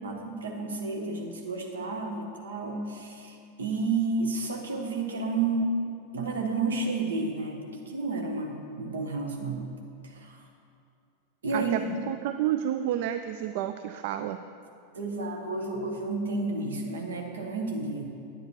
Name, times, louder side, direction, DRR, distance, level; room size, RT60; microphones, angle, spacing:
voice 1, 0.0-5.8 6.1-9.7 10.0-10.4 11.4-11.9 14.9-18.0, right 3 dB, 65° right, 2 dB, 1.3 m, -31 dB
voice 2, 12.1-14.4, right 11 dB, 50° right, 10 dB, 0.3 m, -30 dB
9.7 x 9.6 x 4.5 m, 2.4 s
figure-of-eight pair, 90°, 0 cm